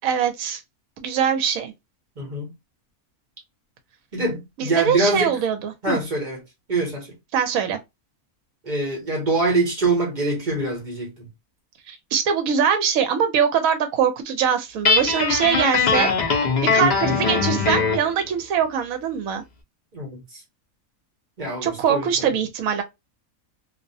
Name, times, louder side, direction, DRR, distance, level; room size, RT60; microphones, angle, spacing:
voice 1, 0.0-0.6 1.0-1.7 4.6-6.0 7.3-7.8 11.9-16.1 16.7-19.4 21.6-22.8, right 7 dB, 70° right, 1.0 m, -22 dB
voice 2, 2.2-2.5 4.1-5.4 5.8-6.4 6.7-7.2 8.6-11.3 16.7-16.8 19.9-20.2 21.4-22.1, right 2 dB, 35° right, 1.0 m, -24 dB
Guitar, 14.8-18.1, left 5 dB, 60° left, 0.4 m, -21 dB
2.6 x 2.1 x 2.6 m
omnidirectional pair, 1.6 m